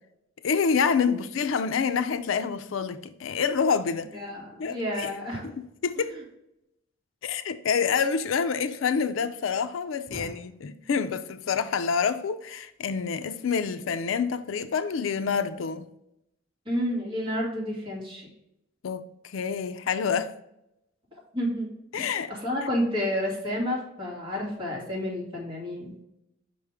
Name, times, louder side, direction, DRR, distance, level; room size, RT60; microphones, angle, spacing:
voice 1, 0.4-4.1 4.6-5.1 5.4-6.2 7.2-15.9 18.8-20.3 21.9-22.3, left 6 dB, 80° left, 0.4 m, -27 dB
voice 2, 4.1-5.5 6.0-6.2 10.1-10.3 16.7-18.3 21.3-21.7 22.3-25.9, equal, 25° right, 2.4 m, -30 dB
5.6 x 5.0 x 3.5 m
head